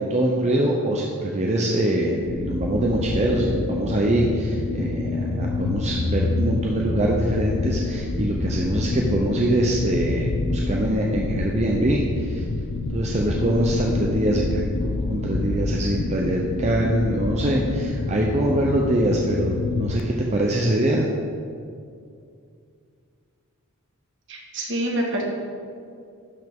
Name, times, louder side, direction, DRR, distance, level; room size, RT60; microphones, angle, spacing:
voice 1, 0.0-12.4 12.9-21.1, right 1 dB, 30° right, -1 dB, 0.6 m, -23 dB
sound 1, 2.2-20.0, left 3 dB, 50° left, 0.4 m, -27 dB
voice 2, 24.3-25.2, right 1 dB, 55° right, 0 dB, 1.4 m, -26 dB
12.0 x 5.4 x 3.6 m, 2.3 s
head